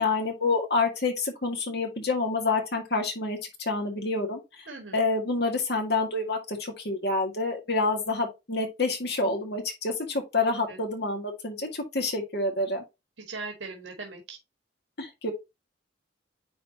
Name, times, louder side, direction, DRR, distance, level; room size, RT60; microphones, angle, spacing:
voice 1, 0.0-4.7 4.9-12.8 15.0-15.3, left 3 dB, 60° left, 1.9 m, -28 dB
voice 2, 13.3-14.4, right 3 dB, 80° right, 1.8 m, -39 dB
9.6 x 4.2 x 2.9 m
head